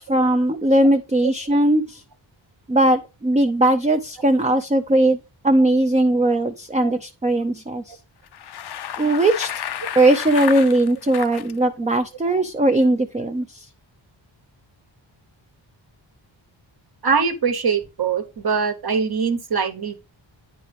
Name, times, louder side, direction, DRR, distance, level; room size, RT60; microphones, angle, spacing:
voice 1, 0.0-2.0 2.7-7.8 9.0-9.5 10.0-13.5, right 1 dB, 15° right, 0.4 m, -19 dB
Bicycle, 8.2-11.5, left 10 dB, 55° left, 0.5 m, -31 dB
voice 2, 17.0-20.0, right 5 dB, 50° right, 1.2 m, -22 dB
9.2 x 4.4 x 3.4 m
wide cardioid pair, 105°, 47 cm